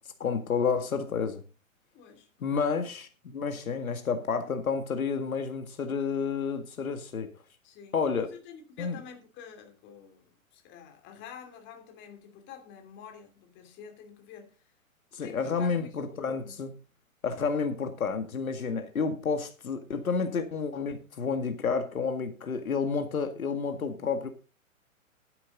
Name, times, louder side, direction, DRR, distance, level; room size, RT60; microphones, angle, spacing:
voice 1, 0.2-1.4 2.4-7.3 7.9-8.3 8.8-9.0 15.1-16.7 17.2-24.3, left 5 dB, 75° left, 1.9 m, -30 dB
voice 2, 1.9-2.7 7.6-14.7 15.2-16.6, left 7 dB, 25° left, 2.8 m, -49 dB
12.0 x 10.0 x 3.9 m
hypercardioid pair, 125°, 42 cm